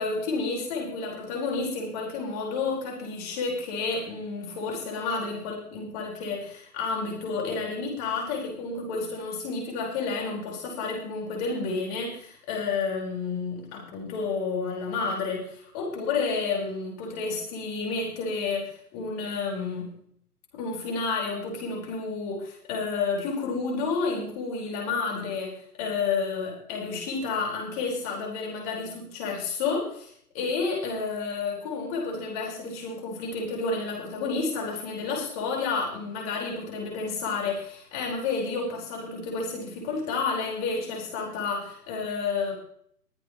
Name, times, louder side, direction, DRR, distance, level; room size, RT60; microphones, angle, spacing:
voice 1, 0.0-19.9 20.5-42.5, left 4 dB, 25° left, -2 dB, 4.9 m, -30 dB
21.5 x 9.7 x 3.2 m, 0.63 s
hypercardioid pair, 155°, 46 cm